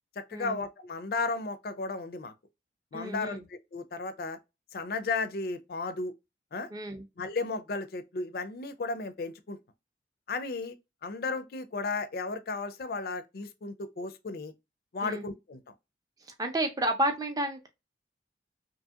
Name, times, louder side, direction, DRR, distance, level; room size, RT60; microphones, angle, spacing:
voice 1, 0.3-2.3 2.9-4.4 4.7-6.1 6.5-6.7 7.2-9.6 10.3-10.7 11.0-14.5 14.9-15.6, left 3 dB, 55° left, 0.4 m, -34 dB
voice 2, 2.9-3.4 6.7-7.0 15.0-15.3 16.4-17.7, right 1 dB, 20° right, 0.5 m, -31 dB
2.7 x 2.7 x 2.3 m
head